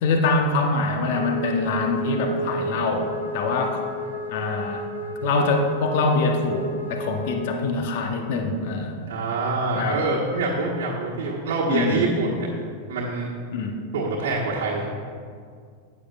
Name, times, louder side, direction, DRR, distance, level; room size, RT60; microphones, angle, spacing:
voice 1, 0.0-3.8 4.3-4.8 5.2-8.9 9.7-10.0 11.7-12.1 13.5-13.8, left 3 dB, 50° left, 4 dB, 0.9 m, -24 dB
Wind instrument woodwind instrument, 1.1-7.5, right 1 dB, 85° left, 1.2 m, -33 dB
voice 2, 9.1-12.5 12.9-13.3 13.9-14.9, right 3 dB, 55° right, -4 dB, 1.3 m, -25 dB
15.0 x 8.3 x 2.4 m, 2.1 s
figure-of-eight pair, 90°, 0 cm